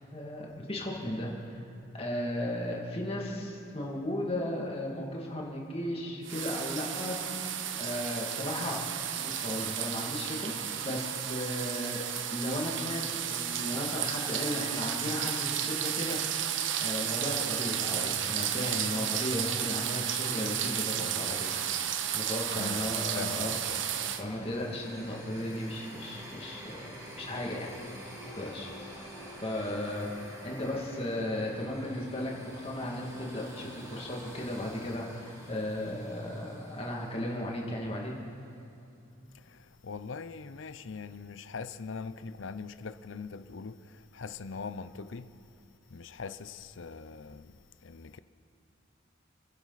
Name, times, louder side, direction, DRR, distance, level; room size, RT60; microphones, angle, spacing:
voice 1, 0.1-1.6 1.9-7.5 7.8-8.8 9.2-12.0 12.3-23.5 24.2-27.7 28.3-29.1 29.4-38.2, left 1 dB, 30° left, 2.3 m, -35 dB
sound 1, 6.2-24.2, right 9 dB, 70° right, 0.8 m, -33 dB
voice 2, 22.5-23.8 39.3-45.3 45.9-47.5 47.8-48.2, left 4 dB, 75° left, 0.6 m, -42 dB
sound 2, 23.3-38.1, equal, 15° right, 2.3 m, -47 dB
29.5 x 11.0 x 4.1 m
head